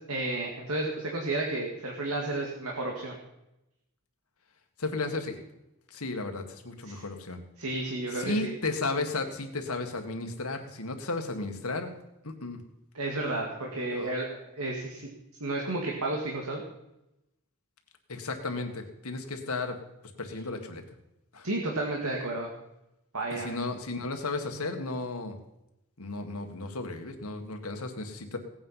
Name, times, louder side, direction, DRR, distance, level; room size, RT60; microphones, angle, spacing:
voice 1, 0.1-3.1 6.8-7.0 7.6-8.5 12.9-15.1 15.4-16.6 21.4-22.5 23.1-23.5, right 2 dB, 80° right, -1 dB, 2.1 m, -32 dB
voice 2, 4.8-5.4 5.9-7.4 8.1-11.9 12.2-12.6 13.9-14.1 18.1-19.8 20.2-20.8 21.3-21.5 23.3-25.4 26.0-28.4, left 3 dB, 80° left, 5 dB, 1.9 m, -34 dB
17.5 x 8.9 x 5.7 m, 0.88 s
head